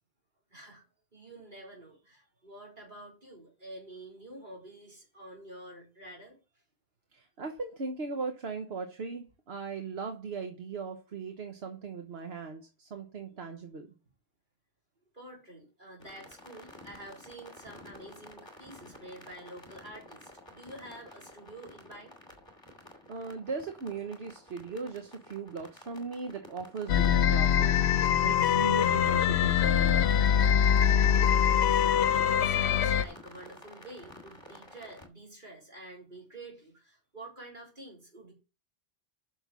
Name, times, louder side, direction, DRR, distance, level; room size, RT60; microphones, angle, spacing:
voice 1, 0.5-0.8 1.1-6.4 15.1-22.2 31.1-38.3, right 1 dB, 50° right, -2 dB, 4.3 m, -48 dB
voice 2, 7.1-13.9 23.1-30.1, right 4 dB, 75° right, 5 dB, 1.3 m, -38 dB
sound 1, 16.0-35.1, left 1 dB, 25° left, 2.4 m, -51 dB
sound 2, 26.9-33.0, left 9 dB, 85° left, 0.9 m, -23 dB
8.1 x 6.3 x 6.1 m, 0.32 s
omnidirectional pair, 1.1 m